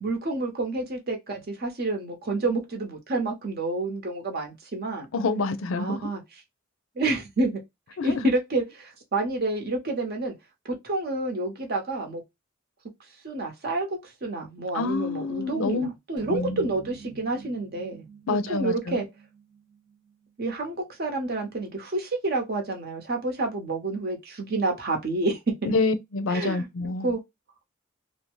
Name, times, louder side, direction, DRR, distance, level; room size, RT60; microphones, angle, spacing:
voice 1, 0.0-5.1 5.8-6.2 7.0-7.6 8.0-10.3 10.8-12.2 13.2-18.0 18.5-19.1 20.4-25.7 26.3-26.7 27.0-27.2, right 2 dB, 50° right, 0.8 m, -29 dB
voice 2, 5.1-6.1 8.0-8.3 14.7-15.9 16.3-16.7 18.3-19.0 25.6-27.1, left 3 dB, 85° left, 0.5 m, -27 dB
sound 1, 16.2-20.5, right 5 dB, 20° right, 0.4 m, -47 dB
2.7 x 2.0 x 3.0 m
head